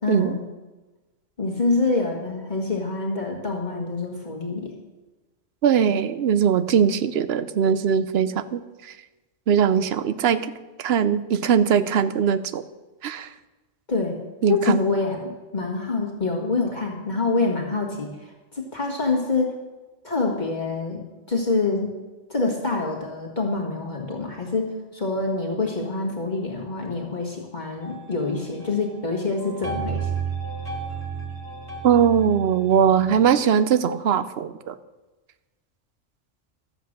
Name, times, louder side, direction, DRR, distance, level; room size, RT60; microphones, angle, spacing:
voice 1, 0.0-0.4 1.4-4.7 13.9-14.2 14.5-19.6 20.0-21.0 21.3-21.9 22.3-30.1, left 3 dB, 40° left, -1 dB, 1.8 m, -26 dB
voice 2, 5.6-8.9 9.5-10.5 10.8-12.6 13.0-13.3 14.4-14.8 31.8-34.8, right 7 dB, 65° right, 13 dB, 0.8 m, -20 dB
sound 1, 27.8-29.0 29.4-33.3, right 6 dB, 15° right, 2.5 m, -33 dB
12.5 x 8.0 x 6.5 m, 1.2 s
omnidirectional pair, 1.2 m